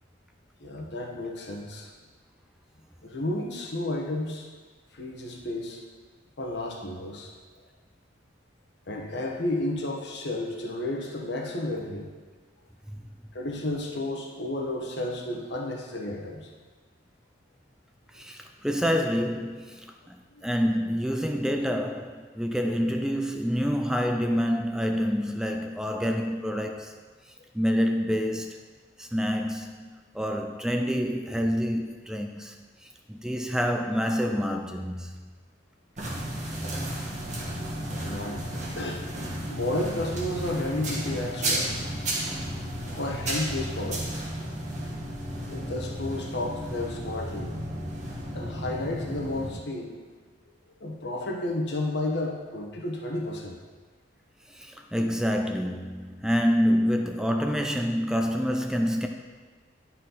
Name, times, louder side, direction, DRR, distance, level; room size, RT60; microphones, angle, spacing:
voice 1, 0.6-1.9 3.0-4.5 4.9-5.8 6.4-7.3 8.9-12.1 13.3-16.5 37.3-37.5 38.0-38.5 38.8-39.0 39.4-41.7 42.9-44.2 45.4-47.6 48.3-49.9 50.8-53.6, left 1 dB, 60° left, 1.2 m, -32 dB
voice 2, 18.1-27.0 27.5-28.6 29.0-32.5 32.8-35.3 54.5-59.1, equal, 5° right, 0.4 m, -27 dB
sound 1, 36.0-49.5, right 1 dB, 40° right, 1.3 m, -33 dB
11.0 x 4.3 x 4.0 m
head